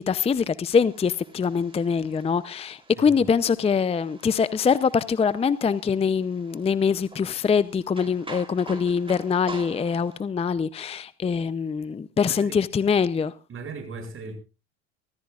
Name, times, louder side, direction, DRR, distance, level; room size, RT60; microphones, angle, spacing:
voice 1, 0.0-13.3, left 6 dB, 15° left, 0.6 m, -24 dB
sound 1, 0.7-10.2, right 3 dB, 15° right, 3.4 m, -46 dB
voice 2, 2.9-3.3 12.2-12.6 13.5-14.4, right 4 dB, 35° right, 7.3 m, -38 dB
24.5 x 14.5 x 2.4 m
hypercardioid pair, 90°, 35 cm